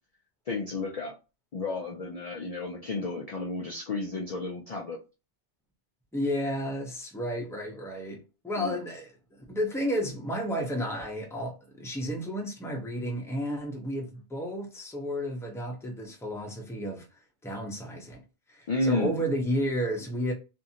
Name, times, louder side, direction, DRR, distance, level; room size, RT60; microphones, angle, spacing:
voice 1, 0.5-1.1 1.5-5.0 8.6-8.8 18.7-19.2, left 3 dB, 70° left, 0.3 m, -32 dB
voice 2, 6.1-18.2 18.5-20.3, equal, 5° left, 0.5 m, -32 dB
2.7 x 2.5 x 2.7 m
omnidirectional pair, 1.2 m